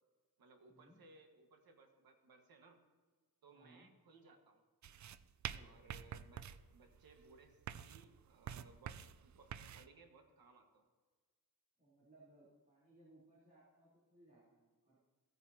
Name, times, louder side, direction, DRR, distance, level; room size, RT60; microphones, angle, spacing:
voice 1, 0.4-2.8 3.4-4.6 5.6-6.4 6.7-10.9, right 3 dB, 70° right, 4 dB, 1.7 m, -63 dB
voice 2, 3.5-3.9 5.4-5.7 11.8-15.0, right 2 dB, 25° right, -10 dB, 3.7 m, -65 dB
sound 1, 4.8-9.9, right 9 dB, 50° right, 0.4 m, -48 dB
16.5 x 9.3 x 2.9 m, 1.4 s
wide cardioid pair, 130°, 37 cm